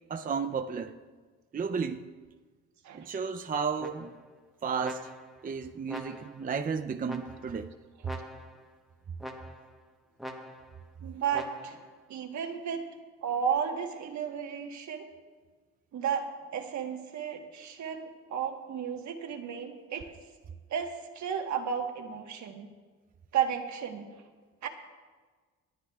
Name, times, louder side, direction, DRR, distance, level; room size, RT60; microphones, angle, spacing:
voice 1, 0.1-1.0 1.5-2.1 2.9-4.2 4.6-5.1 5.4-7.7, right 5 dB, 30° right, 6 dB, 0.5 m, -33 dB
sound 1, 3.8-4.3 4.8-5.5 5.9-6.5 7.1-7.6 8.0-8.7 9.2-9.8 10.2-10.8 11.3-11.9, equal, ahead, 1.0 m, -44 dB
voice 2, 11.0-11.8 12.1-12.9 13.2-15.1 15.9-20.1 20.7-22.7 23.3-24.1 24.6-24.7, right 7 dB, 70° right, 4 dB, 1.3 m, -33 dB
26.5 x 9.8 x 2.4 m, 1.4 s
cardioid pair, 90°, 30 cm